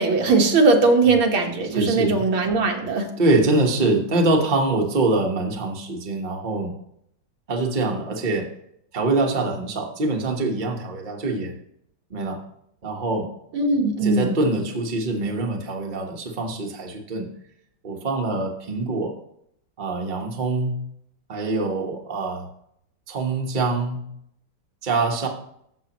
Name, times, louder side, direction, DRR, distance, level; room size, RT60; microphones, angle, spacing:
voice 1, 0.0-3.1 13.5-14.3, right 3 dB, 90° right, 2 dB, 2.1 m, -19 dB
voice 2, 1.7-2.3 3.2-6.8 7.5-8.5 8.9-11.5 12.1-12.4 12.8-13.3 14.0-17.3 17.8-19.2 19.8-20.8 21.3-22.5 23.1-24.0 24.8-25.3, right 2 dB, 30° right, 1 dB, 1.1 m, -24 dB
14.0 x 6.8 x 3.0 m, 0.72 s
omnidirectional pair, 2.2 m